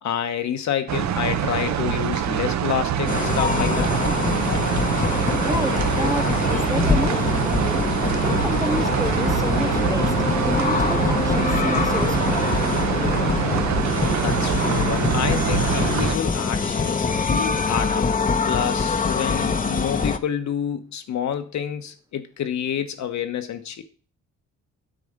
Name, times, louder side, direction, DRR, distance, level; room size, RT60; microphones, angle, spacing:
voice 1, 0.0-3.9 14.2-18.1 18.5-23.8, left 9 dB, 65° left, 1.3 m, -28 dB
sound 1, 0.9-16.2, right 9 dB, 65° right, 0.9 m, -24 dB
sound 2, 3.1-20.2, left 4 dB, 25° left, 0.9 m, -24 dB
voice 2, 5.4-7.9 8.2-10.1 10.4-12.6, right 2 dB, 10° right, 0.4 m, -30 dB
9.2 x 4.3 x 6.6 m
cardioid pair, 90°, 30 cm